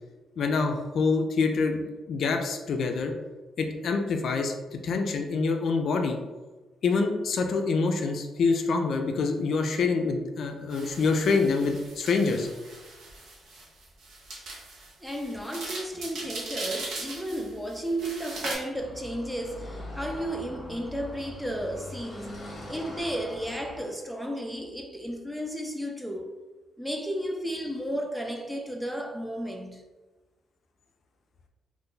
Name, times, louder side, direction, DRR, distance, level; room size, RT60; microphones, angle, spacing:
voice 1, 0.4-3.1 3.6-4.5 4.8-6.2 6.8-12.5, left 4 dB, 60° left, 0.4 m, -26 dB
sound 1, 10.7-18.5, right 2 dB, 70° right, 0.8 m, -39 dB
voice 2, 15.0-22.4 22.7-26.4 26.8-29.8, equal, ahead, 0.4 m, -33 dB
Car passing by / Traffic noise roadway noise, 18.7-23.9, left 1 dB, 35° left, 0.9 m, -42 dB
2.6 x 2.5 x 3.7 m
cardioid pair, 105°, 0 cm